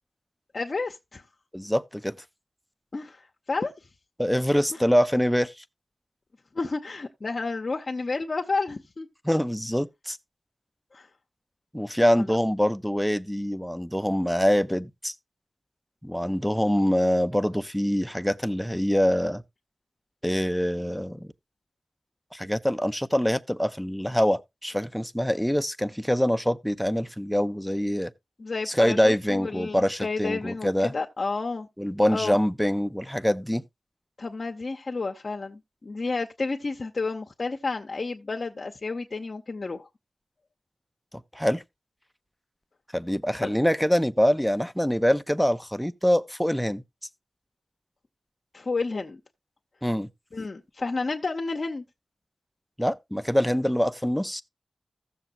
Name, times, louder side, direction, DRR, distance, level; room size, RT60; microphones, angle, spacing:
voice 1, 0.5-1.2 2.9-3.2 3.5-3.7 6.5-9.1 10.9-11.1 12.3-12.4 28.4-31.7 32.1-32.4 34.2-39.9 43.4-43.5 48.5-49.2 50.3-51.8, left 3 dB, 50° left, 0.7 m, -31 dB
voice 2, 1.5-2.2 4.2-5.5 9.3-10.2 11.7-15.1 16.0-19.4 20.2-21.3 22.3-28.1 28.7-30.9 31.8-33.6 41.3-41.6 42.9-46.8 49.8-50.1 52.8-54.4, equal, ahead, 0.5 m, -24 dB
16.0 x 6.8 x 2.5 m
wide cardioid pair, 95°, 0 cm